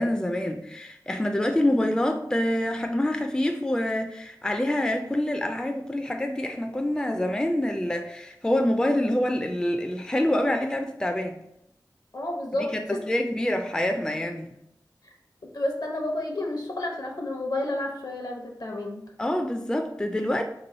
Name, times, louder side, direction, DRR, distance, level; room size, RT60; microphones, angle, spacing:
voice 1, 0.0-11.4 12.7-14.5 19.2-20.4, left 1 dB, 10° left, 5 dB, 0.3 m, -26 dB
voice 2, 12.1-13.0 15.0-15.1 15.5-19.0, left 1 dB, 65° left, 2 dB, 0.8 m, -30 dB
3.0 x 3.0 x 4.0 m, 0.78 s
wide cardioid pair, 55°, 7 cm